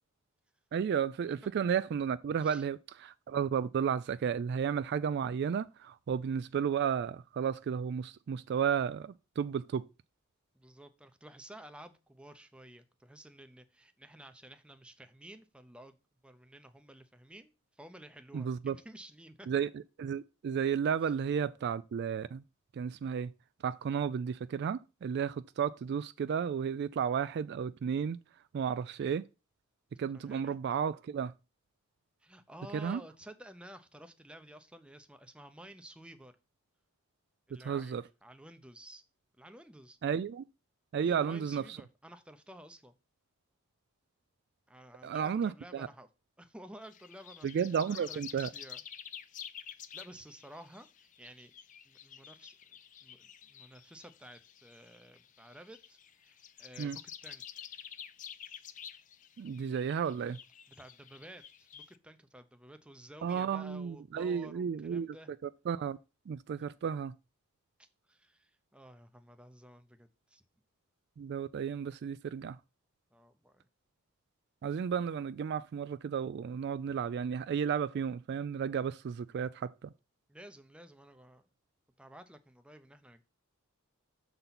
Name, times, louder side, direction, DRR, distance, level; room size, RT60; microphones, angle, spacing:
voice 1, 0.7-2.8 3.0-9.8 18.3-18.8 19.5-22.4 22.7-23.3 23.6-28.2 28.5-29.2 30.0-31.3 32.7-33.0 37.6-38.0 40.0-40.4 40.9-41.8 45.0-45.9 47.4-48.5 56.8-57.0 59.4-60.4 63.2-65.2 65.4-66.0 66.3-67.1 71.2-72.6 74.6-79.9, right 7 dB, 50° right, 0.3 m, -33 dB
voice 2, 10.5-16.0 16.2-19.5 21.0-21.1 30.1-30.6 32.2-36.3 37.5-39.0 39.3-40.0 41.0-43.0 44.7-46.1 46.4-47.5 47.9-48.8 49.9-51.5 51.9-57.4 60.8-65.3 66.5-66.7 67.8-70.4 73.1-73.6 80.3-81.5 82.0-83.2, right 1 dB, 5° right, 0.6 m, -53 dB
sound 1, 46.8-62.0, left 9 dB, 35° left, 0.4 m, -50 dB
6.8 x 4.0 x 5.8 m
head